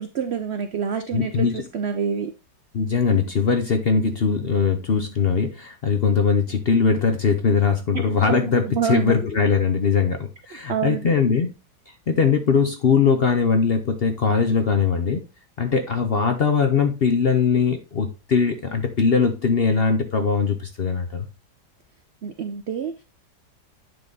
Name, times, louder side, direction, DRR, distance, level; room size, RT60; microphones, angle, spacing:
voice 1, 0.0-2.3 7.9-9.2 10.7-11.2 22.2-23.0, right 7 dB, 75° right, 8 dB, 0.6 m, -27 dB
voice 2, 1.1-1.6 2.7-11.5 12.1-15.2 15.6-21.3, left 5 dB, 50° left, 6 dB, 0.7 m, -21 dB
9.1 x 3.7 x 3.9 m, 0.28 s
omnidirectional pair, 1.8 m